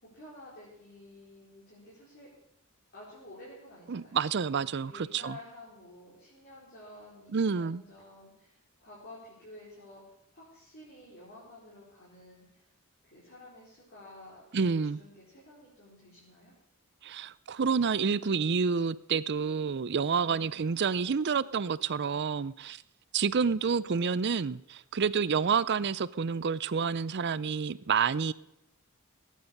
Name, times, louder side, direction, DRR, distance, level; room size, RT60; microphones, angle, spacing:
voice 1, 0.0-2.3 2.9-4.2 4.8-10.0 10.3-12.6 13.1-14.4 14.8-16.5 20.1-21.4 23.7-24.3, left 1 dB, 45° left, 4.8 m, -52 dB
voice 2, 3.9-5.4 7.3-7.8 14.5-15.0 17.0-22.8 23.1-28.3, right 6 dB, 50° right, 0.5 m, -29 dB
18.0 x 9.4 x 6.6 m
head